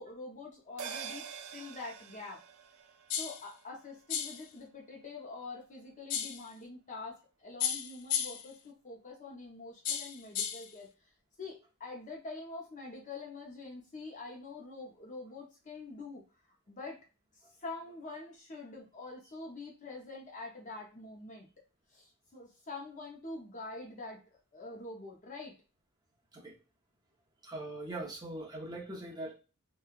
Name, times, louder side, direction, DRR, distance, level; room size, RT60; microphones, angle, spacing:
voice 1, 0.0-2.4 3.1-11.1 11.4-17.0 17.6-21.5 21.9-25.5, left 3 dB, 35° left, 0 dB, 0.6 m, -45 dB
sound 1, 0.8-5.5 5.8-5.9, right 7 dB, 70° right, 0.4 m, -47 dB
sound 2, 3.1-3.4 4.1-4.4 6.1-6.4 7.6-8.5 9.8-10.7, left 9 dB, 80° left, 0.4 m, -34 dB
voice 2, 27.4-29.3, right 2 dB, 20° right, -1 dB, 0.8 m, -41 dB
3.0 x 2.3 x 2.3 m, 0.33 s
head